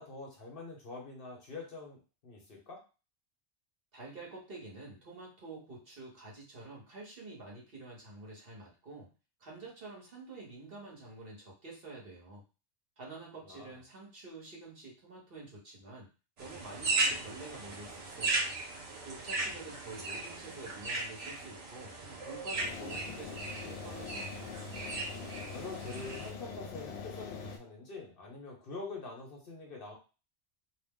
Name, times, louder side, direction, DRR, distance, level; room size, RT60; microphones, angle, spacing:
voice 1, 0.0-2.8 13.4-13.8 25.5-30.0, left 3 dB, 55° left, -1 dB, 1.0 m, -45 dB
voice 2, 3.9-9.1 9.4-12.4 13.0-16.1 16.4-18.5 19.0-21.9 22.2-24.5, right 3 dB, 55° right, -2 dB, 1.1 m, -48 dB
sound 1, 16.4-26.3, right 3 dB, 85° right, 1.2 m, -37 dB
sound 2, 22.5-27.6, left 5 dB, 85° left, 0.9 m, -43 dB
2.6 x 2.0 x 3.5 m, 0.32 s
omnidirectional pair, 1.2 m